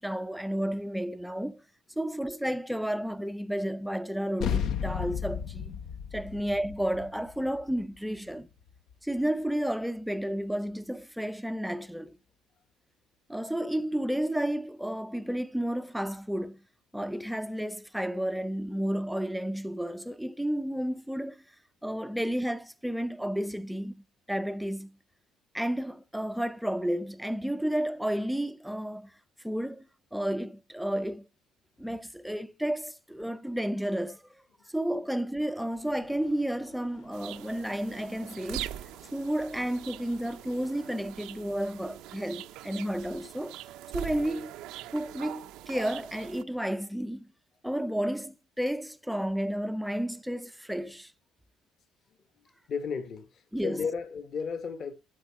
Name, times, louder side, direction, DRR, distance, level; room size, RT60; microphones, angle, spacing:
voice 1, 0.0-1.6 2.0-5.8 6.1-8.5 9.0-12.2 13.3-16.6 16.9-21.4 21.8-25.0 25.5-29.1 29.4-29.8 30.1-31.3 31.8-34.2 34.7-38.7 39.1-43.5 43.9-44.5 44.9-47.3 47.6-51.1 53.5-53.8, equal, ahead, 0.6 m, -32 dB
sound 1, 4.4-9.2, left 8 dB, 65° left, 1.0 m, -34 dB
sound 2, 35.7-40.9, left 6 dB, 90° left, 3.4 m, -57 dB
sound 3, 37.1-46.4, right 13 dB, 80° right, 0.7 m, -42 dB
voice 2, 52.7-54.9, left 5 dB, 45° left, 1.6 m, -34 dB
12.5 x 4.5 x 7.5 m
cardioid pair, 135°, 0 cm